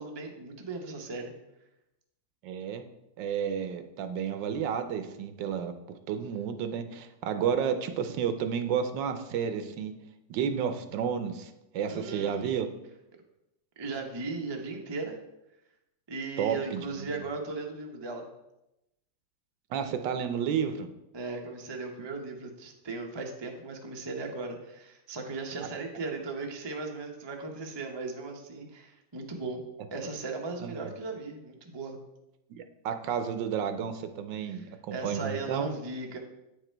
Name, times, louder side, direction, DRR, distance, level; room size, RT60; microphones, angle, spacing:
voice 1, 0.0-1.3 11.9-12.6 13.8-15.2 16.1-18.3 21.1-29.6 29.9-32.0 34.4-36.2, right 3 dB, 30° right, 1 dB, 0.4 m, -37 dB
voice 2, 2.4-2.8 3.2-5.7 6.1-9.9 10.3-12.7 16.4-17.2 19.7-20.9 30.6-30.7 32.5-35.7, right 7 dB, 75° right, 9 dB, 1.3 m, -31 dB
8.5 x 4.9 x 4.5 m, 0.90 s
omnidirectional pair, 2.0 m